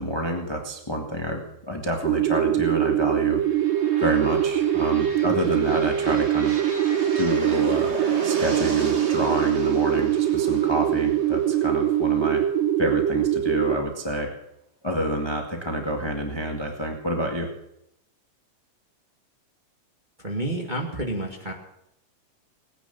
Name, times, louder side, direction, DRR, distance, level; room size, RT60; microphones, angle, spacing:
voice 1, 0.0-3.4 4.0-6.5 7.1-7.9 8.2-12.4 12.8-14.3 14.8-17.5, equal, 20° left, 2 dB, 0.7 m, -28 dB
sound 1, 2.0-13.8, right 11 dB, 85° right, 2.4 m, -23 dB
sound 2, 3.3-13.1, right 3 dB, 65° right, 0.6 m, -36 dB
voice 2, 20.2-21.5, right 1 dB, 20° right, 0 dB, 1.2 m, -29 dB
19.0 x 10.0 x 6.9 m, 0.80 s
omnidirectional pair, 3.7 m